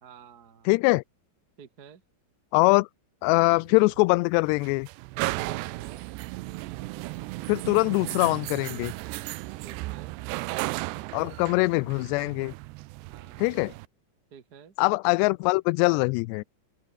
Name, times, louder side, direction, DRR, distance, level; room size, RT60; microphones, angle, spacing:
voice 1, 0.0-0.7 1.6-2.0 5.4-6.0 9.6-10.2 13.1-13.6 14.3-14.7, right 7 dB, 50° right, 1.1 m, -50 dB
voice 2, 0.7-1.0 2.5-2.9 3.2-4.9 7.5-8.9 11.1-12.5 13.4-13.7 14.8-16.4, left 26 dB, 85° left, 2.6 m, -23 dB
sound 1, 3.2-13.9, right 21 dB, 80° right, 2.8 m, -35 dB
open air
omnidirectional pair, 5.0 m